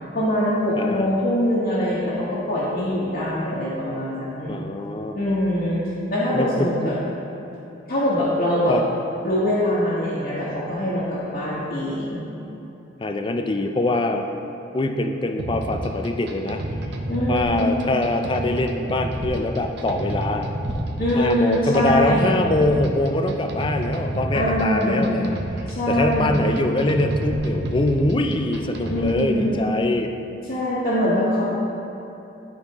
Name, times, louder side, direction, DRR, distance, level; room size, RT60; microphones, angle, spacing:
voice 1, 0.1-4.5 5.1-5.8 6.1-6.9 7.9-8.7 9.2-12.2 17.1-17.9 21.0-22.4 24.3-25.1 25.7-26.5 28.9-29.5 30.5-31.4, equal, 50° left, -11 dB, 1.3 m, -23 dB
voice 2, 0.8-1.1 4.5-5.2 6.3-6.9 8.7-8.8 13.0-14.3 14.7-16.6 17.3-20.5 21.2-25.4 25.9-30.1, left 2 dB, 25° left, 5 dB, 0.4 m, -23 dB
sound 1, 15.4-29.3, right 1 dB, 60° right, 0.6 m, -30 dB
sound 2, 17.3-17.9 19.2-19.7 20.6-21.3 21.8-21.9 22.6-23.0 25.4-25.6 27.3-27.8 28.9-29.3, equal, 20° right, 0.6 m, -40 dB
12.5 x 4.3 x 3.0 m, 2.8 s
head